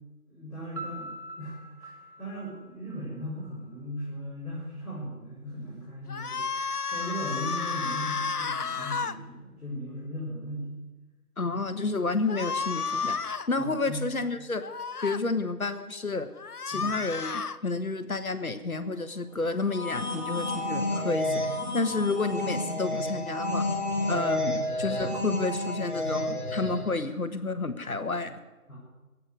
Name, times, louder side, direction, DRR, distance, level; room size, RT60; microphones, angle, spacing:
voice 1, 0.3-10.8 11.4-11.6 13.0-13.2 13.6-14.0 16.7-17.0 24.1-24.3 25.0-25.1 26.7-26.9 28.7-28.8, equal, ahead, -26 dB, 5.0 m, -38 dB
Piano, 0.8-3.6, right 1 dB, 85° right, 2.7 m, -43 dB
sound 1, 6.1-9.2 12.3-13.5 14.6-15.2 16.4-17.6, left 5 dB, 85° left, 0.9 m, -32 dB
voice 2, 11.4-14.6 15.0-16.3 16.6-23.7 24.1-28.4, left 3 dB, 70° left, 10 dB, 1.6 m, -30 dB
sound 2, 19.6-27.0, left 1 dB, 30° left, 2.6 m, -30 dB
15.5 x 8.8 x 9.6 m, 1.1 s
figure-of-eight pair, 170°, 44 cm